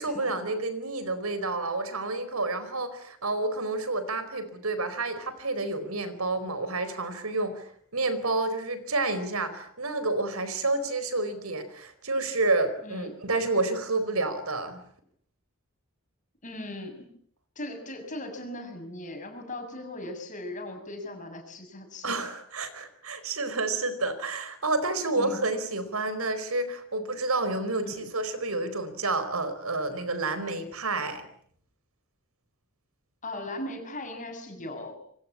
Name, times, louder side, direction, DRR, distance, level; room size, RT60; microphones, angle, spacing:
voice 1, 0.0-14.8 22.0-31.2, right 2 dB, 85° right, 13 dB, 4.6 m, -29 dB
voice 2, 16.4-17.1 17.6-22.3 25.1-25.4 27.8-28.1 33.2-35.0, left 1 dB, 35° left, 4 dB, 7.0 m, -38 dB
27.0 x 24.0 x 8.7 m, 0.65 s
head